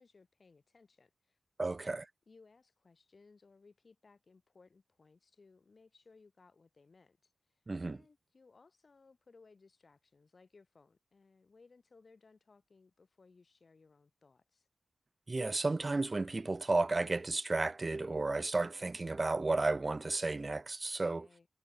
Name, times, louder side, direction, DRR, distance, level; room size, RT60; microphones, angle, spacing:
voice 1, 0.0-1.9 2.3-7.6 7.9-14.7 21.0-21.5, left 4 dB, 55° left, 4.2 m, -63 dB
voice 2, 1.6-2.0 7.7-8.0 15.3-21.3, right 3 dB, 40° right, 0.4 m, -33 dB
cardioid pair, 40°, 0 cm